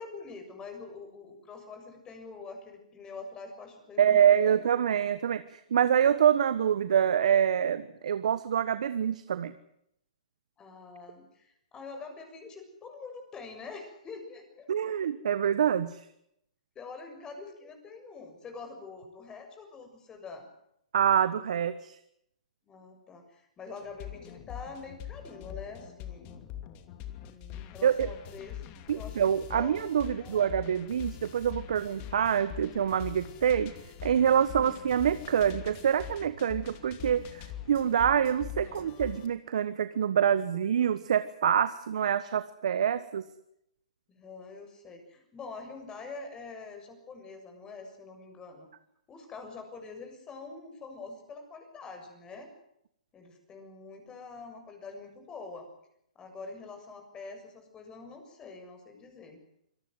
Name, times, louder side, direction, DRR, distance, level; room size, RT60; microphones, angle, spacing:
voice 1, 0.0-4.8 10.6-15.0 16.8-20.5 22.7-26.4 27.2-29.2 29.5-30.5 34.6-34.8 44.2-48.7 49.1-52.5 53.1-55.7 56.2-59.4, left 4 dB, 20° left, 5 dB, 6.9 m, -45 dB
voice 2, 4.0-9.5 14.7-16.0 20.9-22.0 27.8-28.1 28.9-33.7 34.0-43.2, right 9 dB, 70° right, 13 dB, 1.4 m, -26 dB
sound 1, 23.8-39.3, left 11 dB, 35° left, 2.8 m, -43 dB
26.0 x 18.5 x 7.9 m, 0.75 s
hypercardioid pair, 130°, 4 cm